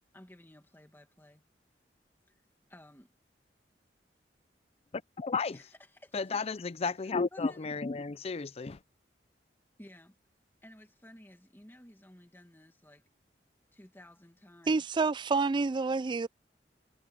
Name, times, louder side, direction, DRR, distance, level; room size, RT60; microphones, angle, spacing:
voice 1, 0.1-1.4 2.3-2.4 2.7-3.1 5.5-6.6 7.0-7.8 8.1-8.3 9.8-10.2 10.6-13.0 13.7-14.9 15.8-16.0, left 1 dB, 15° left, 2.2 m, -55 dB
voice 2, 5.2-5.5 6.1-8.8, left 4 dB, 35° left, 0.5 m, -33 dB
voice 3, 14.7-16.3, right 4 dB, 25° right, 0.3 m, -28 dB
head